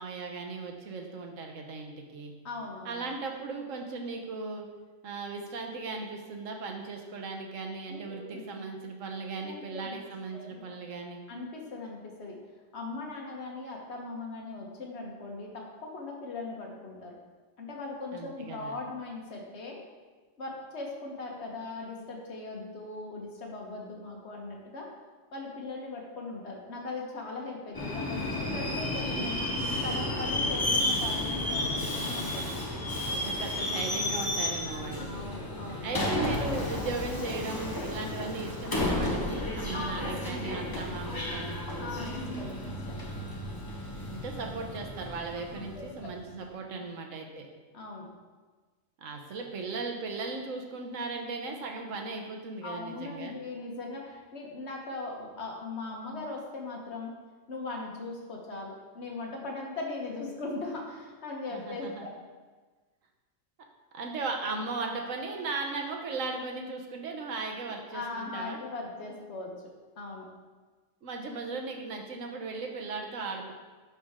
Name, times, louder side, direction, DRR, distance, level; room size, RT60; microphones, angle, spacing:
voice 1, 0.0-2.3 2.8-4.7 5.0-11.2 18.1-18.8 33.1-35.1 35.8-41.6 44.1-47.5 49.0-53.3 61.5-62.1 63.9-68.6 71.0-73.5, right 3 dB, 70° right, 2 dB, 1.3 m, -37 dB
voice 2, 2.4-3.0 7.9-8.5 9.4-9.9 10.3-10.6 11.3-12.4 12.7-15.6 15.9-17.2 17.6-19.8 20.4-24.9 25.3-29.4 29.8-32.4 34.6-35.9 39.7-40.2 40.5-40.9 41.8-43.0 45.5-46.1 46.7-46.8 47.7-48.1 52.6-57.1 57.5-62.1 67.9-69.5 70.0-70.3, left 3 dB, 55° left, -1 dB, 1.6 m, -39 dB
Subway metro underground, 27.7-46.2, left 1 dB, 20° left, 0.8 m, -32 dB
11.0 x 4.4 x 3.6 m, 1.3 s
omnidirectional pair, 1.4 m